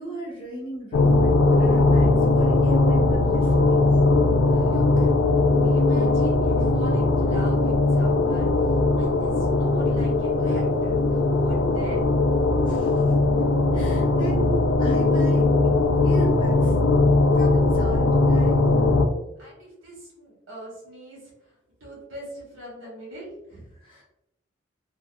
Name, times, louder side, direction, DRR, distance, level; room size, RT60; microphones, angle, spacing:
voice 1, 0.0-3.9 4.5-4.6 12.6-13.0 13.7-15.5 16.0-16.8 17.3-18.6 23.7-24.0, right 1 dB, 25° left, -5 dB, 0.8 m, -35 dB
sound 1, 0.9-19.1, left 2 dB, 75° left, 0.3 m, -20 dB
voice 2, 4.5-8.5 9.0-12.2 13.3-13.5 19.4-21.5 21.8-23.7, right 1 dB, 70° right, -4 dB, 1.3 m, -41 dB
2.7 x 2.3 x 2.2 m, 0.86 s
head